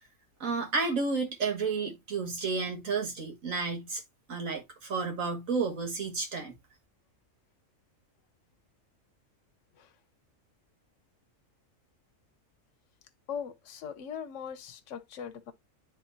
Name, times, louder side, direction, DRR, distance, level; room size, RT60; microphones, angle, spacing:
voice 1, 0.4-4.0 4.3-6.5, right 4 dB, 80° right, 2.1 m, -31 dB
voice 2, 13.3-15.5, left 7 dB, 70° left, 1.1 m, -40 dB
10.5 x 3.7 x 2.6 m
omnidirectional pair, 1.4 m